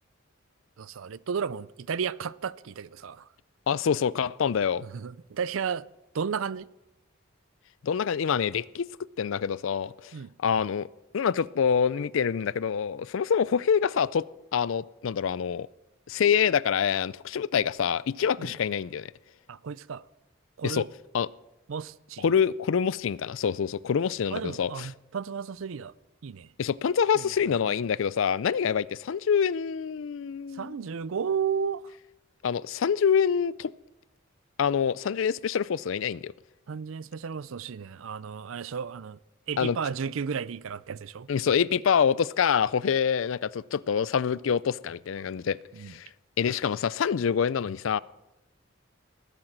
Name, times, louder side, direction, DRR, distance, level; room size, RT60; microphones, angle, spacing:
voice 1, 0.8-3.3 4.8-5.9 6.1-6.7 10.1-10.3 18.4-18.5 19.5-20.0 20.6-20.9 21.7-22.2 24.3-25.9 26.2-26.5 27.1-27.3 30.5-31.8 36.7-39.2 39.5-41.3 45.7-45.9, right 6 dB, 70° right, 0.5 m, -33 dB
voice 2, 3.7-4.8 7.8-8.9 9.2-10.1 10.4-10.9 11.1-14.3 14.5-15.7 16.1-19.1 20.6-20.9 21.1-21.3 22.2-24.9 26.6-30.8 32.4-33.7 34.6-36.3 39.6-39.8 41.3-45.6 45.9-46.1 46.4-48.0, left 7 dB, 65° left, 0.4 m, -26 dB
19.5 x 8.9 x 6.0 m
head